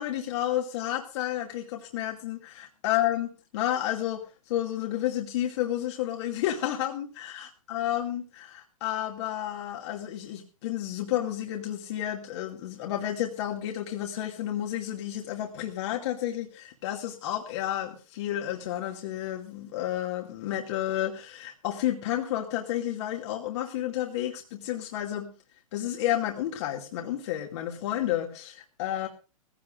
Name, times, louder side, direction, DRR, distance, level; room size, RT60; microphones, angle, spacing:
voice 1, 0.0-25.3 25.7-29.1, left 12 dB, 55° left, 1 dB, 2.4 m, -31 dB
19.5 x 16.5 x 2.6 m, 0.33 s
hypercardioid pair, 110°, 18 cm